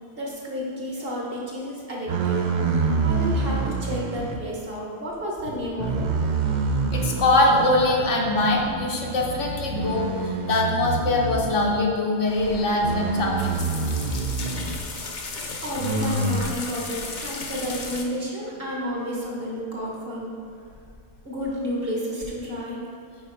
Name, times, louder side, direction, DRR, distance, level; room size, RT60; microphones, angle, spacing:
voice 1, 0.1-6.1 15.6-20.3 21.2-22.8, equal, 50° right, -3 dB, 1.4 m, -31 dB
sound 1, 2.1-4.4 5.4-7.9 8.4-8.6 9.7-11.9 12.8-14.8 15.8-16.6, right 4 dB, 70° right, 0.4 m, -26 dB
voice 2, 6.9-13.6, left 2 dB, 70° left, -1 dB, 1.2 m, -22 dB
sound 2, 12.3-18.0, left 3 dB, 50° left, 0.6 m, -35 dB
6.2 x 4.8 x 4.4 m, 2.3 s
omnidirectional pair, 1.3 m